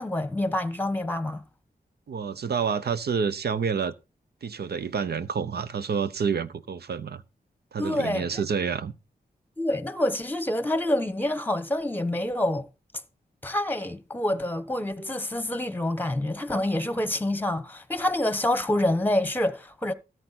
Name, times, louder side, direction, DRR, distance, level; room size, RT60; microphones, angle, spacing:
voice 1, 0.0-1.4 7.8-8.2 9.6-12.7 13.4-19.9, left 1 dB, 10° left, 1.1 m, -27 dB
voice 2, 2.1-3.9 4.4-7.2 7.7-8.9, right 6 dB, 80° right, 0.8 m, -28 dB
13.5 x 8.2 x 4.2 m
cardioid pair, 70°, 17 cm